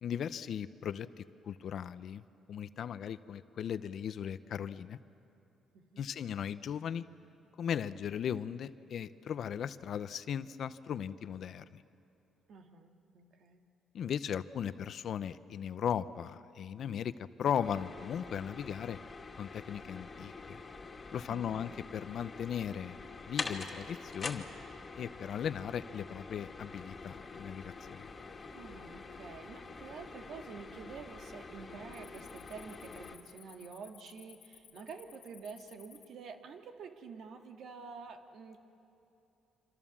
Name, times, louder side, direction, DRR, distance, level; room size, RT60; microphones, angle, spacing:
voice 1, 0.0-1.1 1.5-2.2 2.5-5.0 6.0-7.0 7.6-11.8 13.9-19.0 19.4-20.6 21.1-23.0 23.3-24.4 25.0-28.1, left 8 dB, 65° left, 14 dB, 0.7 m, -37 dB
voice 2, 5.7-6.1 12.5-13.7 21.3-21.7 28.5-38.6, right 5 dB, 70° right, 5 dB, 1.9 m, -48 dB
sound 1, 17.6-33.2, left 4 dB, 35° left, 2.3 m, -46 dB
Cricket, 27.1-27.5 28.0-28.4 29.0-29.1 29.7-30.3 30.6-30.9 31.2-36.1, left 11 dB, 90° left, 2.2 m, -59 dB
27.5 x 26.0 x 7.4 m, 2.8 s
cardioid pair, 90°, 0 cm